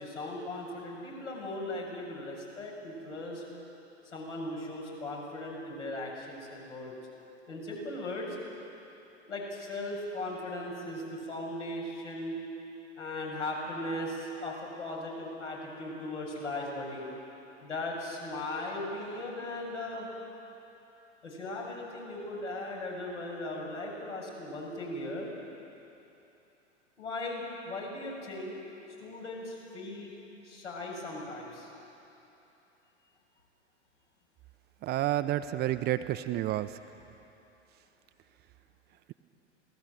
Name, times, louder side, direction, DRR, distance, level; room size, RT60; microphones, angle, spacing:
voice 1, 0.0-3.4 4.1-6.9 7.5-8.4 9.3-12.4 13.0-17.1 17.6-20.1 21.2-25.3 27.0-28.6 29.0-30.1 30.4-31.7, left 1 dB, 75° left, -2 dB, 7.4 m, -38 dB
voice 2, 34.8-36.8, right 14 dB, 25° right, 10 dB, 0.7 m, -30 dB
27.5 x 18.0 x 7.9 m, 2.9 s
figure-of-eight pair, 95°, 36 cm